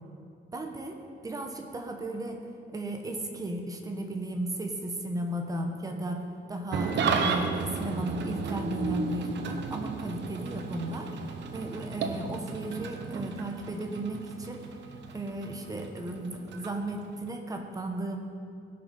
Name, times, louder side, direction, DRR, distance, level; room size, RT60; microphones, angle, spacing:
voice 1, 0.5-2.4 2.7-11.1 11.5-14.7 15.1-18.2, right 1 dB, 20° right, 4 dB, 1.0 m, -35 dB
Engine starting / Idling, 6.7-17.3, right 5 dB, 75° right, 0.9 m, -34 dB
17.0 x 6.2 x 5.4 m, 2.5 s
wide cardioid pair, 170°, 18 cm